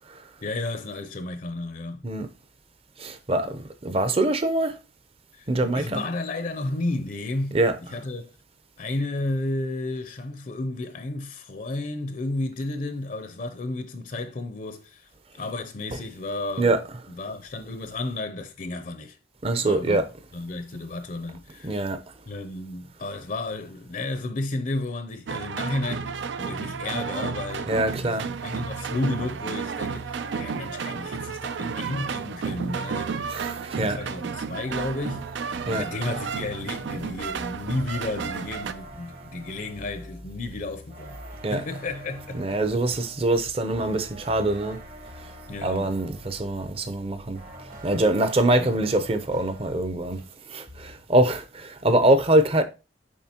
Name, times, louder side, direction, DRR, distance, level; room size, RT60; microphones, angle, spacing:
voice 1, 0.4-2.1 5.3-7.6 7.9-8.3 8.8-15.1 15.3-16.7 17.1-19.2 19.6-20.0 20.3-21.8 22.3-27.7 28.1-33.2 33.7-35.3 35.6-41.2 41.5-42.6 45.5-45.9 48.6-48.8, left 2 dB, 45° left, 0.6 m, -32 dB
voice 2, 3.0-4.8 5.5-6.0 7.5-7.8 16.6-16.8 19.4-20.1 21.6-22.0 27.7-28.3 33.3-34.0 35.7-35.8 41.4-41.6 42.3-44.8 45.6-47.4 47.8-50.2 50.5-52.6, right 1 dB, 35° right, 0.6 m, -24 dB
sound 1, 25.3-38.7, right 5 dB, 80° right, 0.5 m, -32 dB
sound 2, 34.7-50.4 50.7-51.1, right 1 dB, 50° right, 1.2 m, -44 dB
7.2 x 4.9 x 2.9 m
head